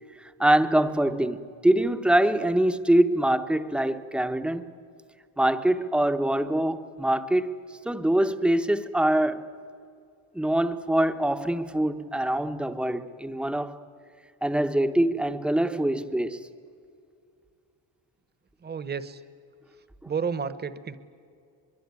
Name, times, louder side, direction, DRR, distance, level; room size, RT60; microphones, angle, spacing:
voice 1, 0.2-4.7 5.4-7.6 7.8-9.4 10.3-13.8 14.4-16.4, right 1 dB, ahead, 0.8 m, -24 dB
voice 2, 18.6-19.2 20.0-21.0, right 6 dB, 20° right, 1.0 m, -31 dB
23.5 x 23.0 x 9.6 m
cardioid pair, 170°, 45 cm